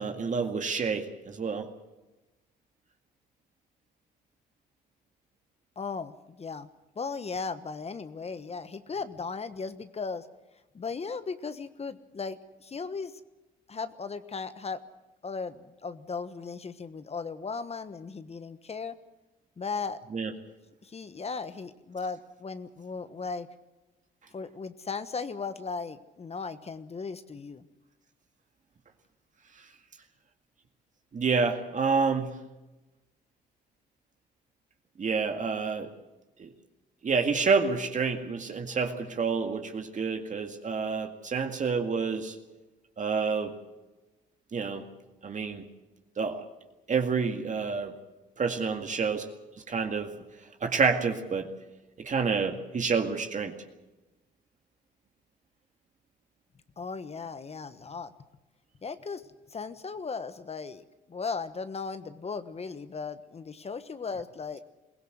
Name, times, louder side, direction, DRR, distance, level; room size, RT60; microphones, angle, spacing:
voice 1, 0.0-1.7 20.1-20.3 31.1-32.3 35.0-35.9 36.4-36.5 37.0-42.3 43.0-43.5 44.5-44.8 45.2-45.6 46.2-46.4 46.9-47.9 48.4-49.3 49.7-50.1 50.6-51.5 52.0-53.6, right 5 dB, 45° right, 4 dB, 2.1 m, -28 dB
voice 2, 5.8-6.7 7.0-10.3 10.7-13.1 13.7-14.8 15.2-18.9 19.6-20.0 20.8-23.5 24.3-27.7 56.8-58.1 58.8-59.2 59.5-64.6, left 4 dB, 35° left, 12 dB, 1.3 m, -37 dB
22.0 x 16.5 x 7.9 m, 1.1 s
supercardioid pair, 70°, 18 cm